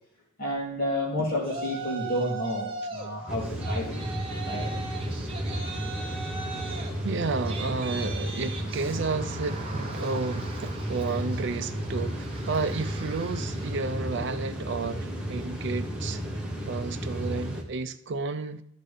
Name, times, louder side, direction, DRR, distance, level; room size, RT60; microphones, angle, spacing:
voice 1, 0.4-4.0 4.4-4.7, left 1 dB, 45° left, 2.5 m, -30 dB
Yell, 1.4-3.1 3.4-13.9, right 4 dB, 25° right, 1.2 m, -40 dB
sound 1, 3.3-17.6, equal, 5° right, 1.3 m, -33 dB
voice 2, 7.0-16.2 16.7-18.6, right 4 dB, 60° right, 0.5 m, -31 dB
12.5 x 4.2 x 5.0 m
head